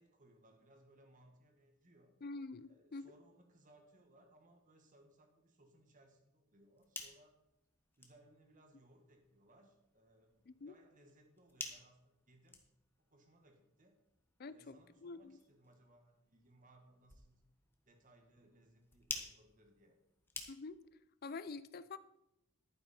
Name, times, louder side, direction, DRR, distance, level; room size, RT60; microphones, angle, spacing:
voice 1, 0.0-2.2 2.7-7.3 8.0-12.6 13.1-14.0 14.5-17.4 17.9-20.0, right 1 dB, 40° right, 4 dB, 1.7 m, -66 dB
voice 2, 2.2-3.1 10.5-10.7 14.4-14.8 15.0-15.4 20.5-20.8 21.2-22.0, left 3 dB, 50° left, 15 dB, 0.5 m, -46 dB
sound 1, 6.5-21.0, left 3 dB, 10° left, 1.2 m, -53 dB
11.0 x 9.5 x 4.4 m, 0.84 s
head